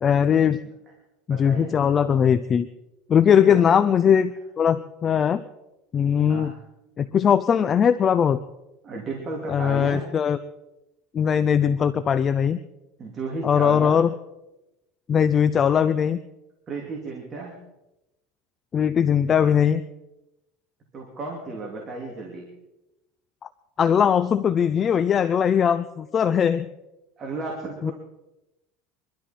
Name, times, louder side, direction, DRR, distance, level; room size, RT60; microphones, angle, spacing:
voice 1, 0.0-0.6 1.3-2.7 3.1-5.4 5.9-6.5 7.0-8.4 9.5-10.4 11.1-12.6 13.4-14.1 15.1-16.2 18.7-19.8 23.8-26.7 27.8-27.9, left 8 dB, 25° left, 12 dB, 0.5 m, -20 dB
voice 2, 1.3-1.8 3.3-3.6 6.3-6.6 8.8-10.1 13.0-14.0 16.7-17.6 20.9-22.5 27.2-27.9, right 3 dB, 25° right, -1 dB, 2.8 m, -33 dB
24.0 x 12.5 x 4.4 m, 0.96 s
cardioid pair, 150°, 0 cm